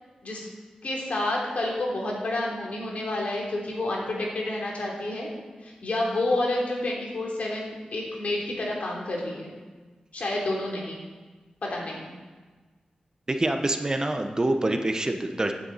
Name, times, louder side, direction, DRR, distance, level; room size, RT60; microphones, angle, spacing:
voice 1, 0.8-5.3 5.6-9.5 10.1-11.0 11.6-12.1, left 2 dB, 70° left, -2 dB, 3.3 m, -29 dB
voice 2, 13.3-15.5, right 1 dB, 30° right, 5 dB, 1.0 m, -26 dB
15.5 x 9.0 x 4.2 m, 1.3 s
wide cardioid pair, 70°, 2 cm